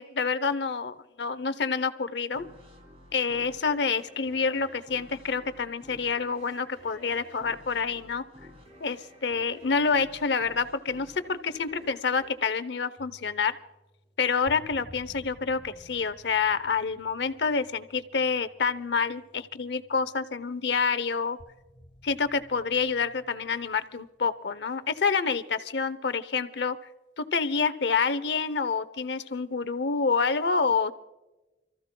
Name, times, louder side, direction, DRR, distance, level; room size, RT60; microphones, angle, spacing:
voice 1, 0.0-2.5 3.1-8.2 8.8-13.5 14.2-21.4 22.0-26.8 27.2-30.9, left 5 dB, 65° left, 14 dB, 0.7 m, -28 dB
sound 1, 2.3-13.5, left 1 dB, 35° right, 3.0 m, -52 dB
sound 2, 13.0-20.9 21.4-24.1 24.9-25.1, equal, 35° left, 1.1 m, -54 dB
30.0 x 14.5 x 2.2 m, 1.0 s
head